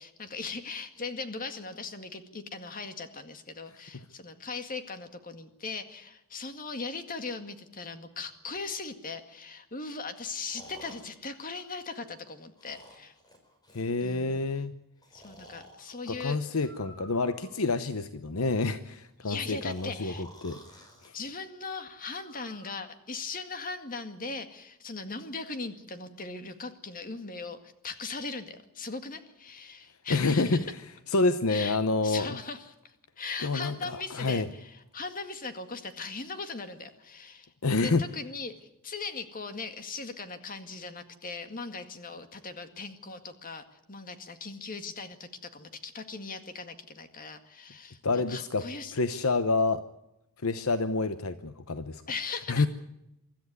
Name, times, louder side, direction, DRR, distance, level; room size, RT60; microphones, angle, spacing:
voice 1, 0.0-13.1 14.0-14.4 15.1-16.4 19.2-20.2 21.1-30.6 31.5-31.8 32.0-37.5 37.8-49.0 52.1-52.7, left 4 dB, 40° left, 8 dB, 2.0 m, -39 dB
Breathing, 8.5-8.6 10.4-12.1 12.6-13.9 15.0-15.8 16.6-17.7 19.7-21.1 22.2-22.7, left 1 dB, 20° left, 4.6 m, -52 dB
voice 2, 13.7-14.7 16.1-21.2 30.1-30.7 31.1-32.4 33.4-34.5 37.6-38.0 48.0-48.6 48.9-49.8 50.4-52.0 52.5-52.7, left 3 dB, 70° left, 11 dB, 0.9 m, -28 dB
24.5 x 13.5 x 9.6 m, 0.87 s
head